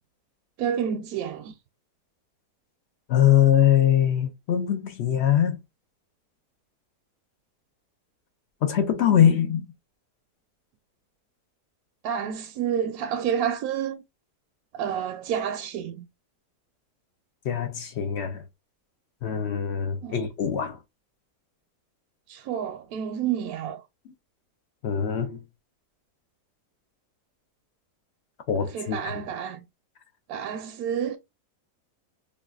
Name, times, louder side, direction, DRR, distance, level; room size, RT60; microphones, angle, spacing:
voice 1, 0.6-1.6 12.0-14.0 14.7-16.1 20.0-20.2 22.3-23.8 28.7-29.6 30.3-31.2, right 8 dB, 75° right, 1.0 m, -29 dB
voice 2, 3.1-5.6 8.6-9.7 17.4-18.4 19.2-20.8 24.8-25.4 28.5-29.2, left 10 dB, 65° left, 0.6 m, -22 dB
5.2 x 2.4 x 2.3 m
omnidirectional pair, 1.7 m